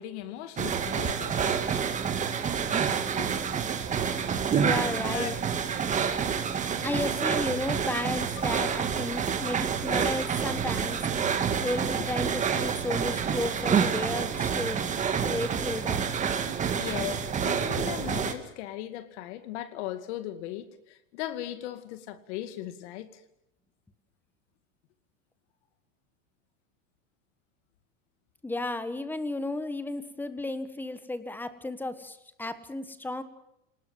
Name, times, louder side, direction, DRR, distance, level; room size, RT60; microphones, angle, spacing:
voice 1, 0.0-1.8 3.2-3.4 5.1-5.4 16.8-23.2, left 12 dB, 60° left, 2.4 m, -38 dB
sound 1, 0.6-18.3, right 7 dB, 20° right, 1.9 m, -28 dB
voice 2, 4.6-5.4 6.8-11.0 11.6-14.8 15.2-16.1 28.4-33.2, left 2 dB, 5° left, 1.4 m, -33 dB
28.5 x 19.5 x 7.6 m
supercardioid pair, 155°, 38 cm